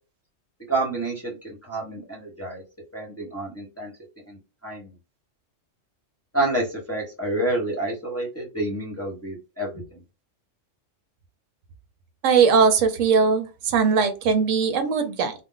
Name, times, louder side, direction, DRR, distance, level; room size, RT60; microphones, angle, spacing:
voice 1, 0.7-2.6 2.9-3.9 4.3-4.9 6.3-10.0, right 2 dB, 15° left, -3 dB, 0.6 m, -29 dB
voice 2, 12.2-15.3, right 5 dB, 80° right, 7 dB, 1.0 m, -20 dB
2.5 x 2.0 x 3.7 m, 0.30 s
omnidirectional pair, 1.3 m